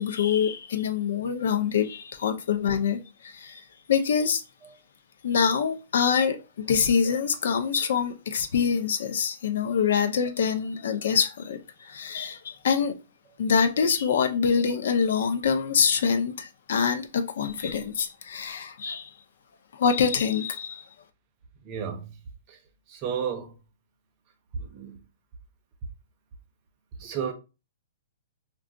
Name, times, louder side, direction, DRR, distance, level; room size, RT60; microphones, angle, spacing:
voice 1, 0.0-4.4 5.2-12.9 13.4-19.1 19.7-20.9, left 6 dB, 60° left, 0.5 m, -25 dB
voice 2, 21.6-22.1 22.5-22.6 22.9-23.5 24.5-25.0 27.0-27.3, right 7 dB, 20° right, 0.5 m, -32 dB
2.3 x 2.3 x 3.8 m
hypercardioid pair, 175°, 0 cm